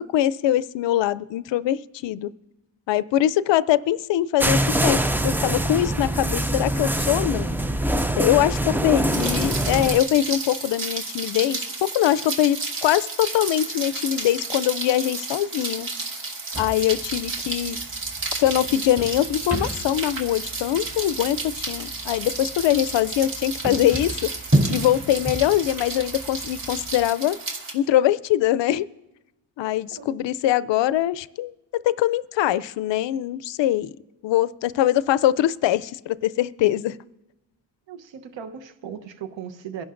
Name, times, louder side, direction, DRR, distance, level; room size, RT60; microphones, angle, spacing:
voice 1, 0.0-2.3 2.9-7.5 8.2-15.9 16.6-17.8 18.4-24.3 24.7-27.4 27.7-28.9 29.6-31.5 31.8-33.9 34.2-37.0, left 12 dB, 65° left, 17 dB, 0.5 m, -22 dB
sound 1, 4.4-10.0, right 1 dB, 5° right, 0.3 m, -24 dB
Rain, 9.1-27.7, right 3 dB, 45° right, 1.9 m, -32 dB
sound 2, 16.5-27.1, right 1 dB, 30° right, 3.4 m, -32 dB
voice 2, 37.9-39.9, right 7 dB, 65° right, 9 dB, 1.0 m, -38 dB
23.5 x 11.0 x 2.6 m, 1.0 s
cardioid pair, 90°, 48 cm